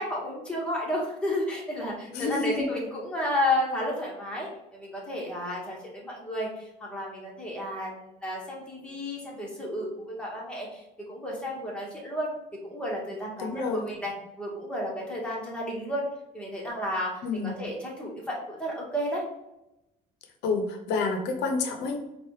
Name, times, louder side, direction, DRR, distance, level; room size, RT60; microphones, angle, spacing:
voice 1, 0.0-10.8 11.1-12.3 12.6-16.1 16.3-19.2, left 1 dB, 5° left, -4 dB, 1.4 m, -32 dB
voice 2, 2.1-2.7 13.4-13.8 17.2-17.5 20.4-22.0, left 4 dB, 85° left, 4 dB, 0.7 m, -28 dB
4.6 x 2.5 x 3.2 m, 0.90 s
cardioid pair, 110°, 17 cm